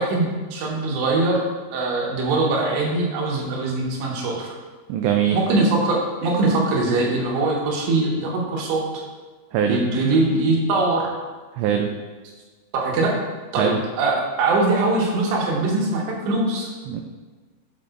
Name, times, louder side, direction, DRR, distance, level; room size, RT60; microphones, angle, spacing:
voice 1, 0.0-1.4 1.7-4.5 5.3-8.8 9.7-11.1 12.7-13.1 13.5-13.7 14.0-16.7, right 2 dB, 70° right, -2 dB, 3.4 m, -22 dB
voice 2, 4.9-5.4 9.5-9.8 11.5-11.9 13.6-13.8 16.9-17.0, right 8 dB, 90° right, 4 dB, 2.4 m, -21 dB
14.5 x 5.3 x 2.5 m, 1.4 s
omnidirectional pair, 5.5 m